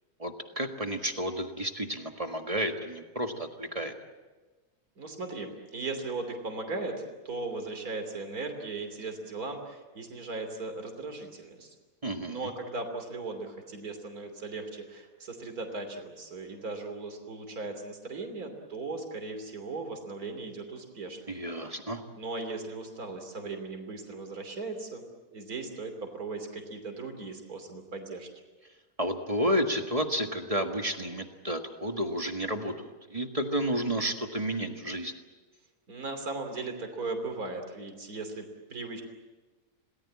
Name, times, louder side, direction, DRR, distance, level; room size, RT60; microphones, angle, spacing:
voice 1, 0.2-3.9 12.0-12.5 21.3-22.0 29.0-35.1, equal, 25° right, 5 dB, 1.7 m, -31 dB
voice 2, 5.0-11.8 12.3-21.2 22.1-25.1 25.3-28.3 35.9-39.0, right 3 dB, 70° right, 5 dB, 3.5 m, -38 dB
28.0 x 19.0 x 8.6 m, 1.3 s
omnidirectional pair, 1.6 m